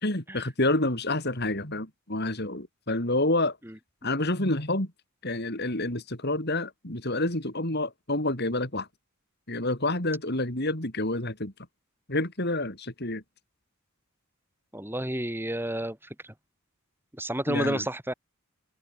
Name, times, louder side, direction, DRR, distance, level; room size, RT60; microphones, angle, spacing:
voice 1, 0.0-3.6 4.0-4.9 5.2-8.9 9.5-11.5 12.1-13.2 17.5-17.8, left 2 dB, 45° left, 4.5 m, -28 dB
voice 2, 14.7-16.0 16.2-16.3 17.1-18.1, right 1 dB, 10° right, 7.1 m, -30 dB
open air
head